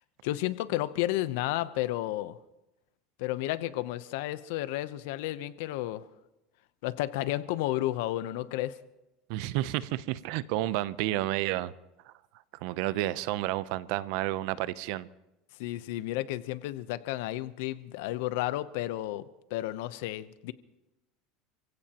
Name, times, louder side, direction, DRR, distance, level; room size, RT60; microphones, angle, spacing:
voice 1, 0.2-2.4 3.2-6.0 6.8-8.8 15.6-19.2 19.5-20.5, left 15 dB, 80° left, 14 dB, 0.8 m, -32 dB
voice 2, 9.3-11.7 12.1-12.2 12.6-15.1, right 15 dB, 70° right, 17 dB, 0.7 m, -31 dB
29.5 x 16.5 x 3.0 m, 0.95 s
supercardioid pair, 125°, 0 cm